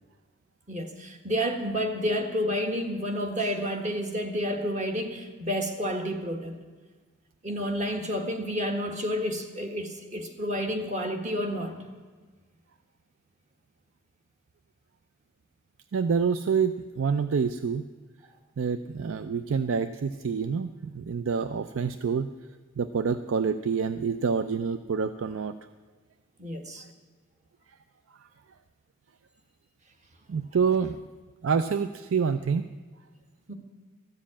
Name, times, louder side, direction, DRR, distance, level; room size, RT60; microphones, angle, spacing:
voice 1, 0.7-6.6 7.4-11.8 26.4-26.8 33.5-33.6, equal, 40° right, 4 dB, 1.5 m, -30 dB
voice 2, 15.9-17.8 18.6-22.3 22.8-25.5 30.3-31.0 31.4-32.7, right 6 dB, 85° right, 11 dB, 0.5 m, -27 dB
14.0 x 7.6 x 8.6 m, 1.4 s
head